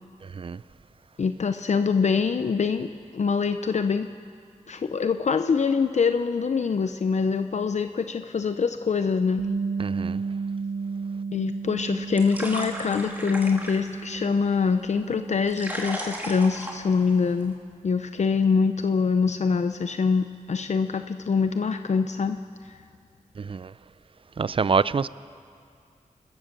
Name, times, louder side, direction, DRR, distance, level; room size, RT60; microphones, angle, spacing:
voice 1, 1.2-4.1 4.7-9.5 11.3-17.6 17.8-22.8, left 5 dB, 60° left, 0.6 m, -24 dB
Bass guitar, 9.4-15.6, right 4 dB, 65° right, 0.8 m, -33 dB
voice 2, 9.8-10.2 23.5-23.7 24.4-25.1, right 5 dB, 40° right, 0.4 m, -25 dB
sound 1, 11.6-17.6, right 1 dB, 10° right, 2.7 m, -38 dB
29.5 x 14.0 x 6.7 m
wide cardioid pair, 95°, 14 cm